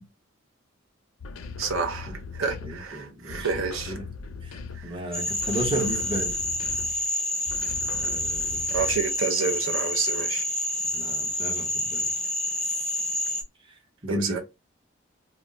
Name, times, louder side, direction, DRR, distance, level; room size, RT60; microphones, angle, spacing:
sound 1, 1.2-2.9 3.3-5.0 5.4-7.1 7.5-9.2, left 5 dB, 80° left, 0.4 m, -39 dB
voice 1, 1.6-4.0 4.7-5.0 8.7-10.4 14.1-14.4, right 5 dB, 80° right, 0.6 m, -29 dB
voice 2, 2.6-4.1 4.4-4.5 4.8-6.3 7.9-8.6 10.9-12.1 14.0-14.4, right 1 dB, 25° right, 0.8 m, -33 dB
Frog, 5.1-13.4, left 1 dB, 5° left, 0.4 m, -28 dB
2.3 x 2.2 x 3.8 m
head